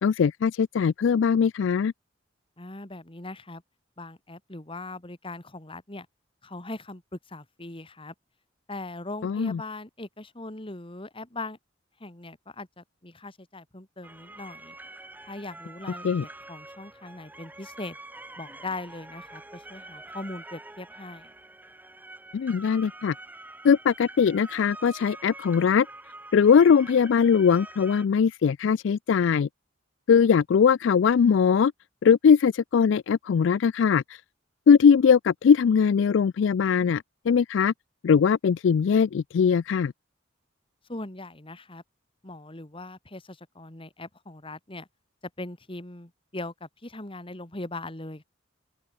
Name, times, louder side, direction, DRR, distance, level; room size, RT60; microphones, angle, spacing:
voice 1, 0.0-1.9 9.2-9.6 16.0-16.2 22.3-23.1 23.6-25.9 26.3-29.5 30.1-31.7 32.0-34.2 34.7-37.7 38.0-39.9, left 6 dB, 65° left, 0.3 m, -21 dB
voice 2, 2.6-3.6 4.0-6.1 6.4-8.1 8.7-11.6 12.0-14.7 15.2-18.0 18.4-21.3 40.9-41.8 42.2-44.9 45.4-48.2, left 2 dB, 25° left, 2.2 m, -40 dB
sound 1, 14.0-28.1, right 2 dB, 10° right, 1.5 m, -45 dB
open air
head